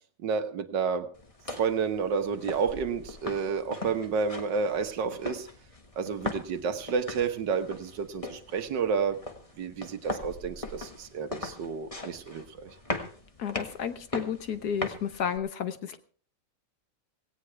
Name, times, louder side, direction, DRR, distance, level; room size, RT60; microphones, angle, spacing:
voice 1, 0.2-1.1 1.5-5.5 6.0-9.2 9.6-12.7, right 5 dB, 70° right, 9 dB, 1.8 m, -30 dB
sound 1, 1.1-15.4, left 2 dB, 20° left, 1.5 m, -40 dB
voice 2, 13.4-16.0, left 8 dB, 60° left, 11 dB, 1.4 m, -32 dB
18.0 x 17.0 x 3.4 m, 0.41 s
omnidirectional pair, 2.0 m